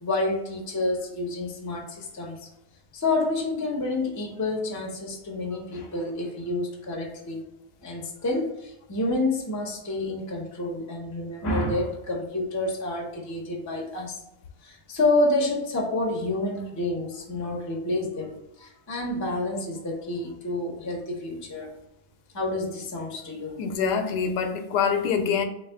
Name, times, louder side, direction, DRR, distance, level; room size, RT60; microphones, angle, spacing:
voice 1, 0.0-2.4 2.9-7.4 7.8-14.2 14.6-21.7 22.3-23.6, left 2 dB, 25° left, 0.4 m, -28 dB
voice 2, 23.6-25.4, left 6 dB, 85° left, 1.2 m, -25 dB
3.3 x 3.2 x 3.4 m
omnidirectional pair, 1.7 m